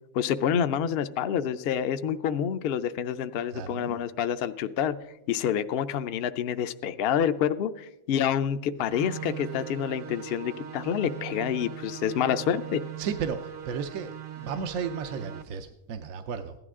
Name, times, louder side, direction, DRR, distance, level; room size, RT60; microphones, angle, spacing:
voice 1, 0.1-5.0 5.3-12.8, left 9 dB, 60° left, 11 dB, 0.7 m, -28 dB
voice 2, 3.5-4.0 13.0-16.6, right 6 dB, 80° right, 8 dB, 1.1 m, -34 dB
sound 1, 8.8-15.4, right 11 dB, 50° right, 0.7 m, -40 dB
15.5 x 11.0 x 3.6 m, 0.90 s
omnidirectional pair, 1.4 m